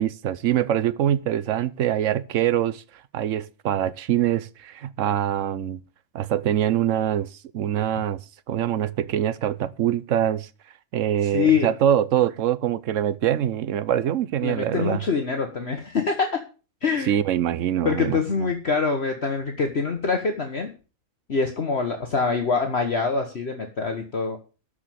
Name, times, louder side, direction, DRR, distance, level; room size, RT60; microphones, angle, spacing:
voice 1, 0.0-2.8 3.1-5.8 6.1-8.2 8.5-10.5 10.9-15.0 17.0-18.5, right 10 dB, 65° right, 1.0 m, -24 dB
voice 2, 11.3-11.7 14.4-16.3 16.8-17.1 17.8-20.7 21.3-24.4, left 5 dB, 45° left, 1.5 m, -24 dB
13.0 x 5.0 x 7.6 m
omnidirectional pair, 1.5 m